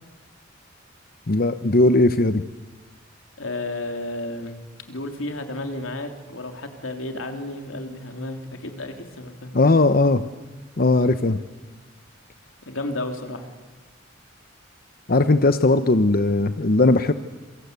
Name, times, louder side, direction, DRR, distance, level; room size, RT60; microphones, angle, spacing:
voice 1, 1.3-2.4 9.5-10.2 10.8-11.4 15.1-17.1, left 2 dB, 50° left, 10 dB, 0.9 m, -18 dB
voice 2, 3.4-4.6 4.9-9.5 12.7-13.5, left 2 dB, 85° left, 5 dB, 3.3 m, -32 dB
27.0 x 24.0 x 8.2 m, 1.3 s
head